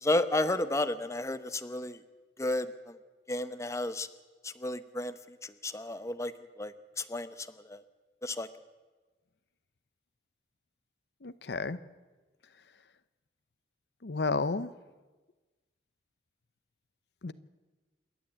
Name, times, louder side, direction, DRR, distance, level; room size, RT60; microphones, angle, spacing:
voice 1, 0.0-2.0 2.4-2.9 3.3-4.1 4.4-5.1 5.4-6.3 6.6-7.8 8.2-8.5, left 2 dB, 15° left, 12 dB, 0.8 m, -32 dB
voice 2, 11.2-11.8 14.0-14.7 17.2-17.3, left 3 dB, 70° left, 14 dB, 0.7 m, -31 dB
28.0 x 12.0 x 8.7 m, 1.3 s
head